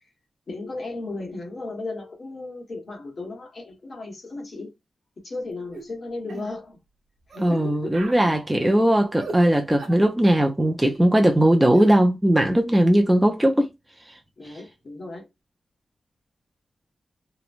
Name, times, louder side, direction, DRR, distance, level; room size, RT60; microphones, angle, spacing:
voice 1, 0.5-4.7 5.2-6.8 7.3-8.1 14.4-15.3, left 2 dB, 45° left, 1.1 m, -35 dB
sound 1, 5.7-5.9 6.3-6.5 7.3-7.6 7.9-8.2 9.2-9.4 9.8-10.0 11.7-11.9, right 3 dB, 65° right, 0.9 m, -38 dB
voice 2, 7.4-13.7 14.1-14.2 14.4-14.6, right 1 dB, 10° right, 0.4 m, -19 dB
3.0 x 2.1 x 2.4 m
wide cardioid pair, 145°, 0 cm